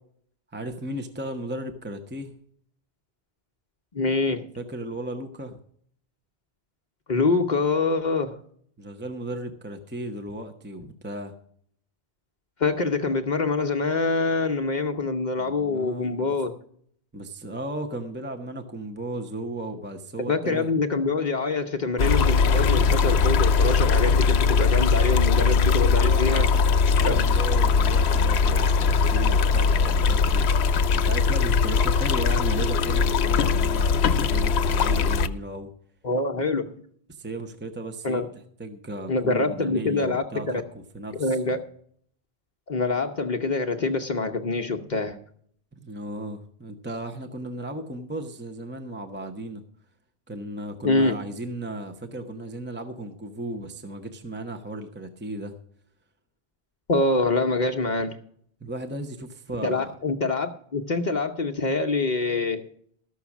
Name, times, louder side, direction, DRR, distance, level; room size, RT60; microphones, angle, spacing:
voice 1, 0.5-2.3 4.6-5.6 8.8-11.3 15.4-16.3 17.1-20.7 25.4-26.6 26.9-30.5 30.9-35.7 37.1-38.2 38.6-40.6 40.9-41.6 45.8-49.6 50.3-55.5 58.6-59.9, right 1 dB, 10° right, 5 dB, 0.7 m, -35 dB
voice 2, 3.9-4.4 7.1-8.4 12.6-16.5 20.3-26.5 27.0-27.3 36.0-36.7 38.0-38.3 39.1-40.6 41.2-41.6 42.7-45.2 50.8-51.1 56.9-58.2 59.6-62.7, left 3 dB, 45° left, 3 dB, 0.8 m, -25 dB
sound 1, 22.0-35.3, left 5 dB, 80° left, 0.9 m, -20 dB
13.0 x 6.3 x 7.1 m, 0.64 s
omnidirectional pair, 1.1 m